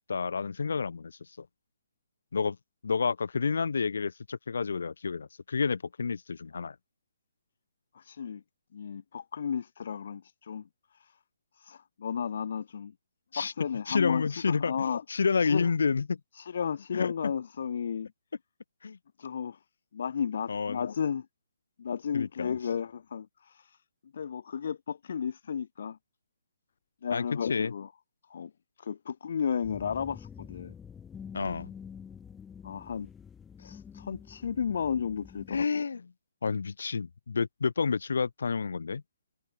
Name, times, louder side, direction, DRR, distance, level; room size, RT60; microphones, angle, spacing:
voice 1, 0.0-1.5 2.3-2.6 2.8-6.8 13.3-13.5 13.9-16.2 16.9-17.1 18.8-19.0 20.5-20.8 22.1-22.6 27.1-27.7 31.3-31.7 35.5-36.1 36.4-39.0, left 5 dB, 75° left, 3.8 m, -30 dB
voice 2, 7.9-8.4 8.7-10.6 10.9-11.1 11.6-12.9 13.4-15.0 15.4-15.7 16.3-18.1 19.2-19.6 19.9-21.3 21.8-23.8 24.1-26.0 27.0-27.9 28.3-28.5 28.8-30.7 32.6-33.1 33.6-35.8, left 7 dB, 60° left, 0.8 m, -33 dB
sound 1, 29.6-35.6, left 7 dB, 10° left, 1.4 m, -47 dB
hypercardioid pair, 150°, 0 cm